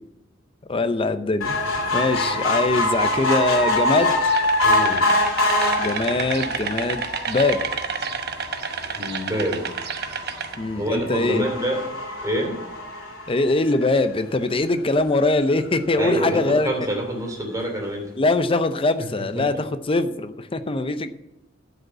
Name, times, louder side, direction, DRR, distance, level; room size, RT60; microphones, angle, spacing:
voice 1, 0.7-4.2 5.8-7.6 10.6-11.4 13.3-16.7 18.2-21.1, left 2 dB, 30° left, 10 dB, 0.6 m, -22 dB
sound 1, 1.4-14.0 14.6-14.7 15.0-15.1 15.3-15.4, left 1 dB, 85° left, 2.6 m, -25 dB
sound 2, 4.3-10.6, right 6 dB, 55° right, 0.9 m, -30 dB
voice 2, 4.6-5.0 9.0-9.6 10.8-11.8 12.2-12.6 16.0-18.1 19.3-19.6, equal, 15° right, 0 dB, 2.9 m, -26 dB
12.0 x 5.4 x 7.5 m, 0.93 s
head